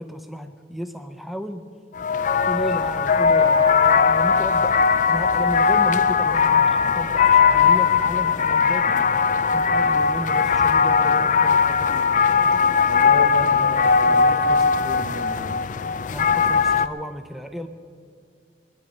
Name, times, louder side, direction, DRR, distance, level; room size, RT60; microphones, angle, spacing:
voice 1, 0.0-1.7 2.3-9.1 9.5-12.1 16.1-17.7, equal, ahead, 7 dB, 0.6 m, -33 dB
sound 1, 1.9-16.9, left 5 dB, 45° left, 0.5 m, -19 dB
voice 2, 12.9-15.7, right 1 dB, 60° right, 7 dB, 1.3 m, -33 dB
24.5 x 10.5 x 5.3 m, 2.2 s
head